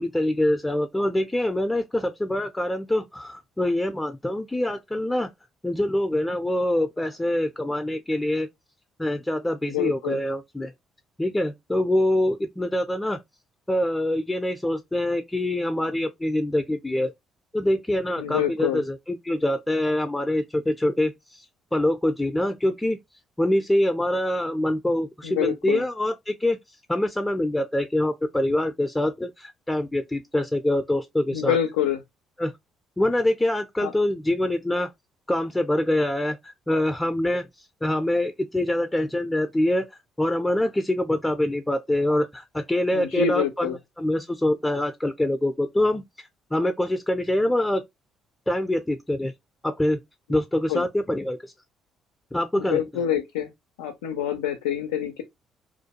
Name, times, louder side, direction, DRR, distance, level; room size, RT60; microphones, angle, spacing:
voice 1, 0.0-5.3 5.6-8.5 9.0-10.7 11.2-13.2 13.7-17.1 17.5-21.4 21.7-23.0 23.4-26.6 26.9-31.6 32.4-32.5 33.0-34.9 35.3-37.5 37.8-39.8 40.2-46.0 46.5-47.8 48.5-49.3 49.6-50.0 50.3-51.5 52.3-52.8, left 1 dB, 15° left, 0.4 m, -25 dB
voice 2, 9.6-10.2 18.2-18.8 25.2-25.8 31.3-32.0 33.8-33.9 42.9-43.8 50.7-50.9 52.6-53.5 53.8-55.2, left 9 dB, 90° left, 0.3 m, -26 dB
2.5 x 2.2 x 2.8 m
hypercardioid pair, 55°, 0 cm